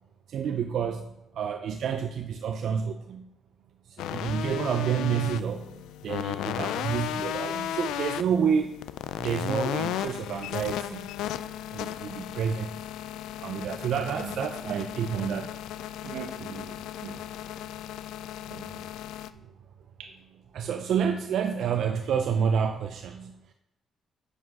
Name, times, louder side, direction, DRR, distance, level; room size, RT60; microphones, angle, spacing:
voice 1, 0.3-1.1 1.4-3.3 4.1-8.7 9.2-11.1 11.7-12.7 13.4-15.5 20.5-23.3, right 7 dB, 70° right, 6 dB, 0.5 m, -29 dB
sound 1, 4.0-19.3, left 11 dB, 90° left, 0.3 m, -35 dB
voice 2, 16.0-17.2 18.5-18.8 20.0-20.1, right 6 dB, 85° right, 3 dB, 1.0 m, -41 dB
8.2 x 7.4 x 4.7 m, 0.87 s
cardioid pair, 90°, 0 cm